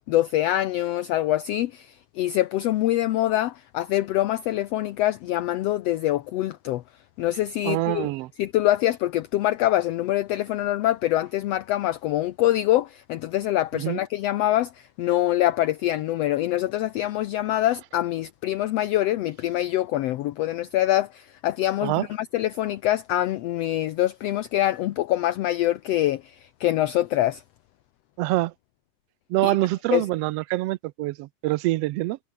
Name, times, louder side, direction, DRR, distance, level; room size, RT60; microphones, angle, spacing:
voice 1, 0.1-6.8 7.2-8.1 8.4-27.4 29.4-29.6 29.9-30.1, left 14 dB, 70° left, 1.7 m, -24 dB
voice 2, 7.6-8.3 13.7-14.0 21.8-22.1 28.2-28.5 29.3-32.2, right 18 dB, 80° right, 1.5 m, -25 dB
omnidirectional pair, 3.3 m